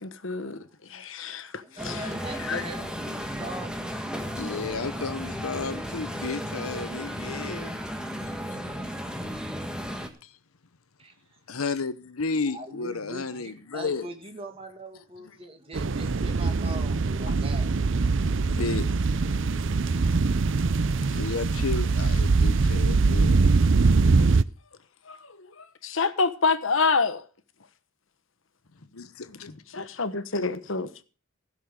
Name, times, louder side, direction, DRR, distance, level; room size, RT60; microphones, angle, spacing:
voice 1, 0.0-2.1 2.4-2.6 17.3-17.4 24.2-24.3 25.1-27.2 29.7-30.9, left 4 dB, 65° left, 1.1 m, -28 dB
voice 2, 1.6-3.7 11.0-11.1 12.5-17.7, right 1 dB, 25° right, 2.4 m, -41 dB
sound 1, 1.8-10.1, equal, 5° right, 1.6 m, -34 dB
voice 3, 4.3-7.8 8.3-8.4 10.2-10.3 11.5-14.1 18.4-18.9 21.1-23.4 28.9-29.5, left 4 dB, 90° left, 0.9 m, -32 dB
sound 2, 15.7-24.4, right 4 dB, 60° right, 0.6 m, -22 dB
16.0 x 6.6 x 6.6 m
head